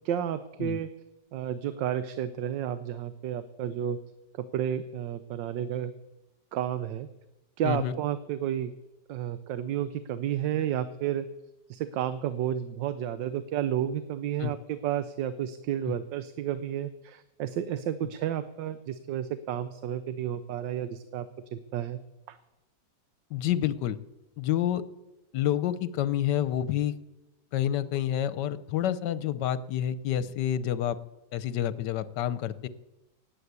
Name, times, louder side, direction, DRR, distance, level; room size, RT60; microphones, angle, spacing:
voice 1, 0.0-0.9 1.3-4.0 4.4-5.9 6.5-7.1 7.6-8.7 9.1-11.3 11.7-22.0 22.3-22.4, right 10 dB, 90° right, 12 dB, 1.4 m, -31 dB
voice 2, 7.6-7.9 14.4-14.5 15.9-16.0 23.3-24.0 24.4-24.8 25.3-26.9 27.5-31.0 31.3-32.7, left 11 dB, 75° left, 15 dB, 1.3 m, -28 dB
18.0 x 8.5 x 8.1 m, 0.99 s
omnidirectional pair, 1.9 m